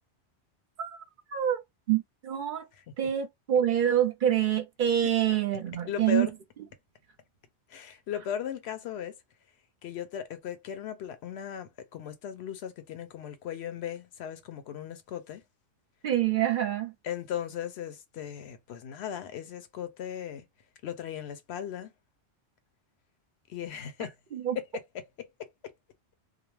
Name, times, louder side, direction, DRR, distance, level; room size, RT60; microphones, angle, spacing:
voice 1, 1.3-1.6 1.9-2.7 3.0-6.3 16.0-16.9 24.3-24.6, right 10 dB, 55° right, 0.7 m, -26 dB
voice 2, 5.9-6.3 7.7-9.2 9.8-15.4 17.0-20.5 20.8-21.9 23.5-24.1 24.7-24.8 25.4-25.5, left 8 dB, 80° left, 0.8 m, -37 dB
2.3 x 2.0 x 3.0 m
omnidirectional pair, 1.1 m